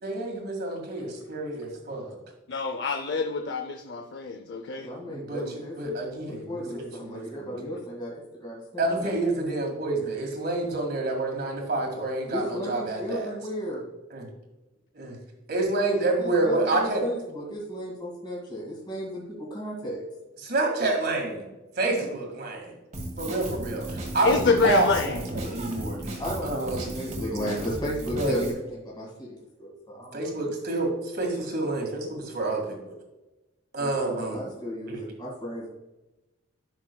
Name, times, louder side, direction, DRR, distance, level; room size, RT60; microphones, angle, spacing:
voice 1, 0.0-2.2 5.1-7.7 8.8-13.3 14.1-14.3 14.9-15.2 15.5-17.0 20.4-21.4 21.8-22.7 23.2-26.9 28.2-28.4 30.1-32.9 33.7-34.4 34.9-35.0, right 2 dB, 55° right, 2 dB, 1.9 m, -28 dB
voice 2, 2.5-4.9 6.3-6.4 24.2-25.2, left 4 dB, 65° left, 6 dB, 0.5 m, -26 dB
voice 3, 4.8-5.9 6.5-9.1 12.3-13.8 16.4-20.0 26.2-26.5 26.9-30.2 33.8-35.7, equal, 25° left, -4 dB, 1.9 m, -34 dB
Drum kit, 22.9-28.5, right 1 dB, 40° right, 1.6 m, -35 dB
11.0 x 6.2 x 2.3 m, 1.0 s
head